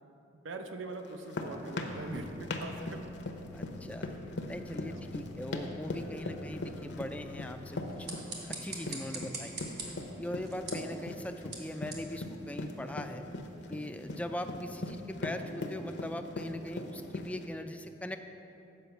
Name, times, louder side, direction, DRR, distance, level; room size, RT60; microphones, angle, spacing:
voice 1, 0.4-3.4 4.8-5.1 10.1-10.4, right 2 dB, 75° right, 6 dB, 0.6 m, -43 dB
sound 1, 1.0-17.5, left 2 dB, 60° left, 0.7 m, -39 dB
sound 2, 1.9-8.1, left 6 dB, 85° left, 0.3 m, -52 dB
voice 2, 3.5-4.1 4.5-8.1 8.5-9.5 10.2-13.3 13.7-18.2, left 1 dB, 5° left, 7 dB, 0.3 m, -40 dB
sound 3, 7.8-13.1, right 3 dB, 55° right, 1.3 m, -45 dB
7.6 x 5.2 x 6.8 m, 3.0 s
head